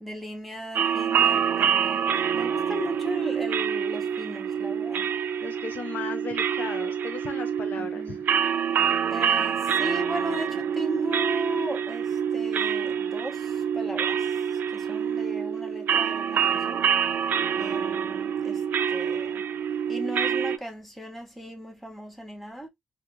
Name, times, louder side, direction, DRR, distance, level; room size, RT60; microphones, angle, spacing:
voice 1, 0.0-5.1 7.8-8.2 9.1-14.2 14.7-16.8 17.5-18.6 18.9-19.4 19.9-22.7, equal, 5° left, 0.9 m, -37 dB
sound 1, 0.7-20.6, right 8 dB, 60° right, 0.4 m, -26 dB
voice 2, 5.4-8.3, left 5 dB, 55° left, 0.5 m, -37 dB
3.5 x 2.4 x 2.9 m
wide cardioid pair, 155°, 4 cm